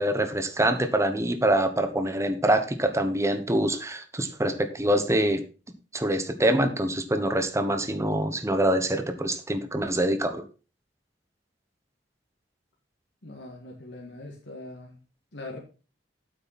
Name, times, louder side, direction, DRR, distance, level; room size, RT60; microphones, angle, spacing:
voice 1, 0.0-5.4 5.9-10.4, right 1 dB, 15° right, 8 dB, 1.2 m, -25 dB
voice 2, 13.2-15.0 15.3-15.6, left 2 dB, 75° left, 0 dB, 2.1 m, -41 dB
8.9 x 8.4 x 4.2 m, 0.34 s
head